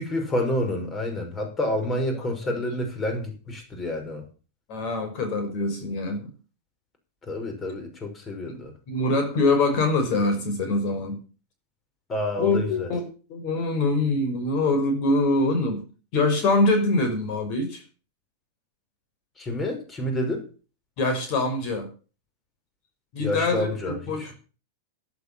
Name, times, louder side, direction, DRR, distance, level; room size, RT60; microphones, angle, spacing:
voice 1, 0.0-4.2 7.3-8.7 12.1-12.9 19.4-20.5 23.2-24.3, left 1 dB, 25° left, 5 dB, 6.0 m, -29 dB
voice 2, 1.9-2.6 4.7-6.3 8.5-8.6 8.9-11.2 12.4-15.8 16.1-17.8 21.0-21.9 23.1-24.3, left 2 dB, 50° left, 6 dB, 5.7 m, -24 dB
11.5 x 11.5 x 7.1 m, 0.36 s
hypercardioid pair, 110°, 0 cm